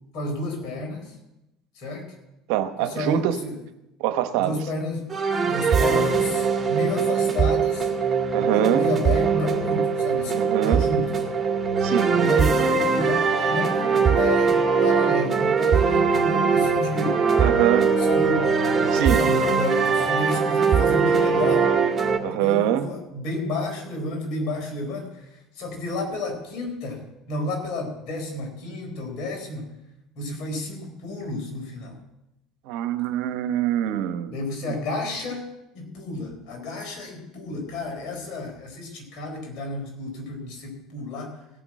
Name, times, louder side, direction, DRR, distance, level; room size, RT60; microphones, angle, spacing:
voice 1, 0.1-1.1 1.8-2.1 2.8-3.6 4.4-5.1 5.4-7.9 8.4-11.2 12.1-17.2 18.0-18.5 18.8-21.7 22.3-25.2 25.6-29.7 30.2-32.0 34.3-35.5 35.7-41.4, left 2 dB, 65° left, 2 dB, 4.2 m, -31 dB
voice 2, 2.5-3.4 4.0-4.6 8.3-8.9 10.4-10.9 11.8-12.1 17.4-17.9 18.9-19.2 22.2-22.9 32.7-34.3 34.7-34.8, right 11 dB, 75° right, 10 dB, 1.0 m, -24 dB
sound 1, 5.1-22.2, right 5 dB, 25° right, 2.2 m, -21 dB
16.5 x 6.0 x 7.5 m, 0.92 s
supercardioid pair, 85°, 0 cm